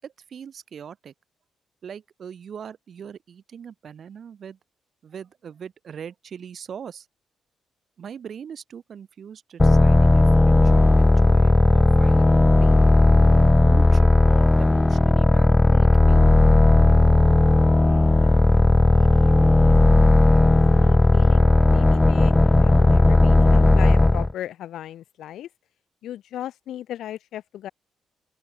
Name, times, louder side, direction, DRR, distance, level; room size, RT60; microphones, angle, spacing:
voice 1, 0.0-1.1 1.8-4.6 5.0-7.1 8.0-12.8 13.6-16.2, right 7 dB, 45° right, 6.0 m, -40 dB
sound 1, 9.6-24.3, left 2 dB, 10° left, 0.4 m, -16 dB
voice 2, 17.8-20.1 20.4-25.5 26.0-27.7, left 12 dB, 80° left, 5.7 m, -38 dB
open air
wide cardioid pair, 180°, 0 cm